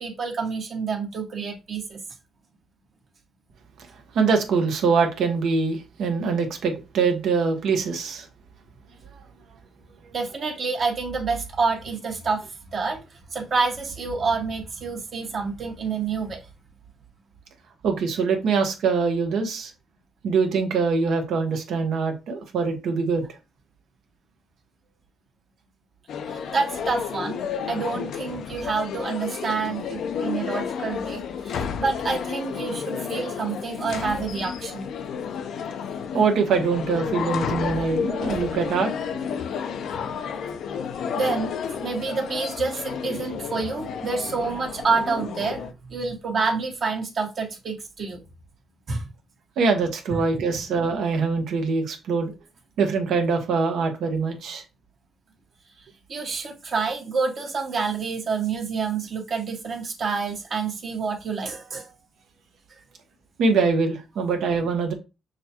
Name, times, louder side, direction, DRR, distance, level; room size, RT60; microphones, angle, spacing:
voice 1, 0.0-2.0 10.1-16.4 26.3-34.9 41.1-41.6 41.8-48.2 48.9-49.1 50.1-50.2 56.1-61.9, right 4 dB, 50° right, 1.2 m, -28 dB
voice 2, 4.1-8.3 17.8-19.7 20.2-23.2 31.6-31.7 36.1-38.9 49.6-52.3 52.8-54.6 63.4-64.9, right 4 dB, 75° right, 1.0 m, -23 dB
sound 1, 26.1-45.7, left 7 dB, 70° left, 0.5 m, -31 dB
6.3 x 2.2 x 2.9 m
cardioid pair, 90°, 0 cm